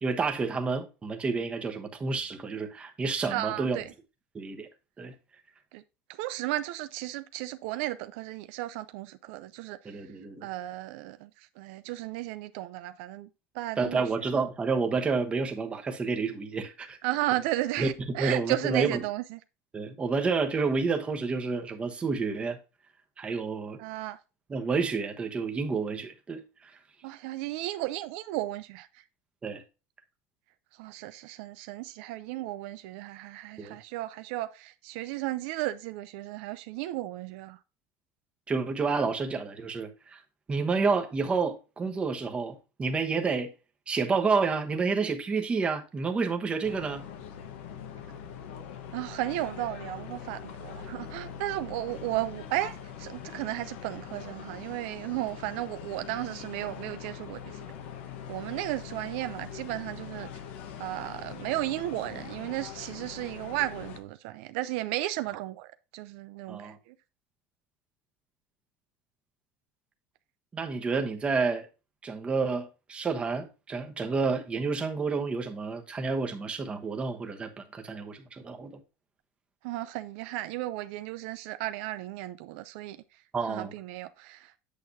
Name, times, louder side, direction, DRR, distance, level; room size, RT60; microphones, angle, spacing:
voice 1, 0.0-3.8 4.3-4.7 5.0-5.1 9.8-10.5 13.8-17.0 17.8-17.9 18.2-19.0 19.7-22.6 23.2-23.8 24.5-26.7 29.4-29.6 33.6-33.8 38.5-40.2 40.5-43.5 43.9-47.1 66.5-66.8 70.5-71.7 72.0-78.7 83.3-83.7, right 4 dB, 20° right, 1.1 m, -29 dB
voice 2, 3.3-3.9 5.7-5.8 6.1-10.0 10.4-13.3 13.5-14.0 17.0-19.4 23.8-24.2 27.0-29.0 30.8-37.6 48.9-57.7 58.3-60.3 60.8-66.9 79.6-83.0 83.5-84.5, right 16 dB, 75° right, 0.5 m, -34 dB
sound 1, 46.6-64.0, left 8 dB, 85° left, 1.3 m, -43 dB
8.4 x 6.5 x 2.7 m
cardioid pair, 150°, 6 cm